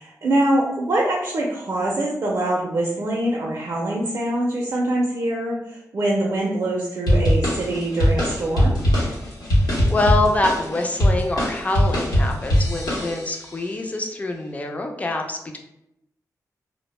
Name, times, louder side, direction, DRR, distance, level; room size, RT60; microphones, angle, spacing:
voice 1, 0.0-8.8, right 1 dB, 50° right, -3 dB, 0.4 m, -24 dB
sound 1, 7.1-13.5, equal, 85° left, 0.8 m, -21 dB
voice 2, 9.9-15.6, left 2 dB, 20° left, 3 dB, 0.3 m, -25 dB
2.0 x 2.0 x 3.0 m, 0.83 s
wide cardioid pair, 125°, 7 cm